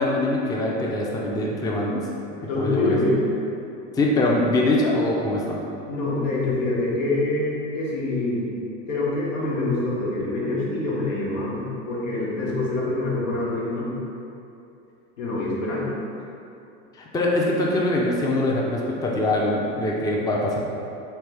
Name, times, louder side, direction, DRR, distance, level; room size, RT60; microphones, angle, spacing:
voice 1, 0.0-2.0 2.6-3.0 3.9-5.6 17.0-20.6, left 1 dB, 10° left, -2 dB, 0.4 m, -23 dB
voice 2, 2.5-3.2 5.9-8.4 8.9-13.9 15.2-15.9, left 2 dB, 85° left, -6 dB, 1.1 m, -25 dB
3.4 x 3.3 x 3.4 m, 2.7 s
hypercardioid pair, 90°, 38 cm